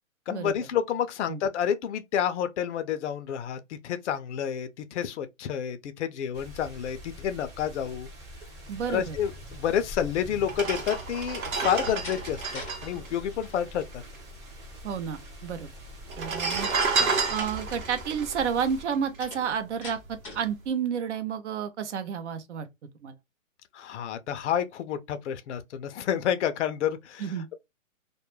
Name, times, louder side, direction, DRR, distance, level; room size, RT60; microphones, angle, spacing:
voice 1, 0.3-8.1 8.9-14.0 23.7-27.3, left 9 dB, 60° left, 0.5 m, -29 dB
sound 1, 6.3-18.8, left 1 dB, 20° right, 0.8 m, -45 dB
voice 2, 8.7-9.2 14.8-15.7 16.2-16.7 17.3-20.0 20.3-22.7 23.0-23.2 27.2-27.5, right 7 dB, 60° right, 0.6 m, -30 dB
sound 2, 9.8-9.9 10.4-14.1 14.4-14.5 14.6-15.3 16.0-19.5 20.0-20.2, right 4 dB, 85° right, 0.9 m, -30 dB
Slam, 11.7-12.8 13.1-13.6 19.2-20.5, left 3 dB, 5° left, 0.5 m, -43 dB
2.2 x 2.1 x 2.9 m
hypercardioid pair, 145°, 40 cm